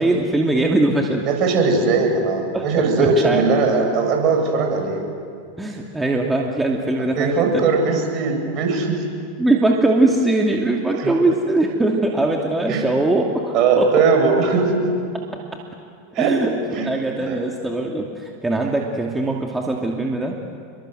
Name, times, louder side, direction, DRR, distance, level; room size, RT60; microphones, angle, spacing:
voice 1, 0.0-1.2 2.5-3.4 5.6-7.6 9.4-13.9 15.1-15.2 16.2-20.4, right 2 dB, 10° right, 0 dB, 2.6 m, -21 dB
voice 2, 1.3-5.1 7.0-9.0 11.0-11.1 12.7-12.8 13.5-14.9 16.1-16.4 16.8-16.9 17.2-17.4, right 4 dB, 45° right, 3 dB, 7.2 m, -19 dB
29.0 x 23.5 x 8.0 m, 2.3 s
hypercardioid pair, 95°, 0 cm